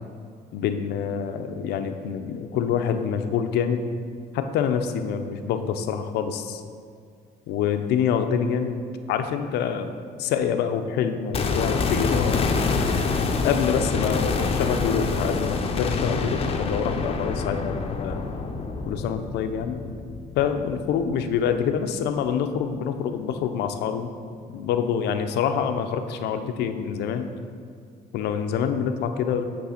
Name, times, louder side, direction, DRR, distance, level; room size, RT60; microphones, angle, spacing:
voice 1, 0.5-3.8 4.3-6.6 7.5-8.8 9.1-9.9 10.2-12.4 13.4-18.2 18.9-19.8 20.3-24.1 24.5-27.3 28.1-29.4, left 7 dB, 80° left, 8 dB, 0.5 m, -26 dB
sound 1, 11.3-21.3 21.6-21.7, left 4 dB, 35° left, 0.6 m, -26 dB
8.6 x 3.3 x 5.6 m, 2.1 s
cardioid pair, 110°, 17 cm